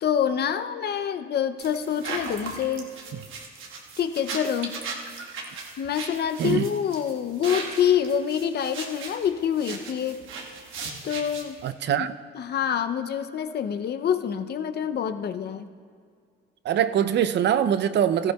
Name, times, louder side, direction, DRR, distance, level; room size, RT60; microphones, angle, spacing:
voice 1, 0.0-2.9 4.0-4.8 5.8-10.2 11.0-11.6 11.9-12.1 12.3-15.7, left 8 dB, 55° left, 10 dB, 0.6 m, -26 dB
sound 1, 1.6-11.7, right 4 dB, 85° right, 1.3 m, -37 dB
voice 2, 11.6-12.1 16.6-18.3, right 9 dB, 60° right, 13 dB, 0.5 m, -23 dB
16.0 x 14.5 x 2.3 m, 2.1 s
cardioid pair, 90°, 20 cm